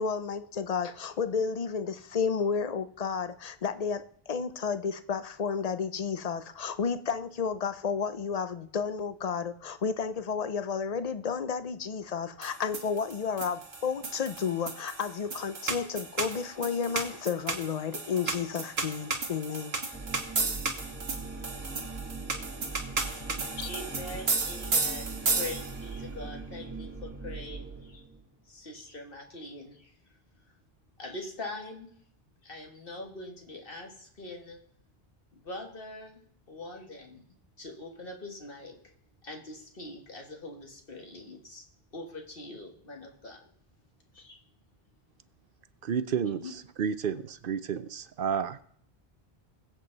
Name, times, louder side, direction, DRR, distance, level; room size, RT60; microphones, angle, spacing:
voice 1, 0.0-19.8 21.4-21.5 23.2-23.3 23.6-23.7, left 6 dB, 45° left, 12 dB, 0.7 m, -32 dB
sound 1, 12.4-25.9, right 3 dB, 80° right, 1.6 m, -33 dB
sound 2, 19.9-28.2, right 3 dB, 15° right, 1.2 m, -41 dB
voice 2, 23.6-28.0 28.5-29.9 31.0-31.9 32.4-34.6 35.3-36.2 36.5-37.2 37.6-38.7 39.2-41.6 41.9-43.4 44.1-44.4 46.4-46.5, left 2 dB, 60° left, 2 dB, 2.1 m, -43 dB
voice 3, 45.8-46.4 46.8-48.6, right 7 dB, 65° right, 13 dB, 0.8 m, -31 dB
21.5 x 7.7 x 4.0 m, 0.63 s
omnidirectional pair, 1.0 m